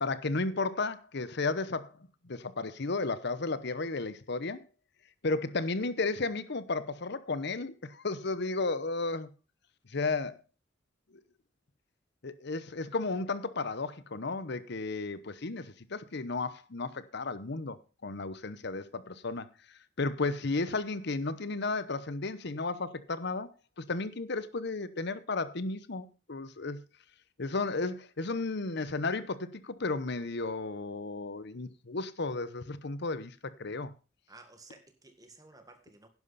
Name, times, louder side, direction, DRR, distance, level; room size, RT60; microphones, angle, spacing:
voice 1, 0.0-1.9 2.2-4.6 5.2-9.3 9.9-10.4 12.2-17.8 18.0-19.5 20.0-23.5 23.8-26.8 27.4-33.9, left 3 dB, 60° left, 0.9 m, -33 dB
voice 2, 34.3-36.1, right 3 dB, 20° right, 1.8 m, -54 dB
11.0 x 11.0 x 4.1 m
head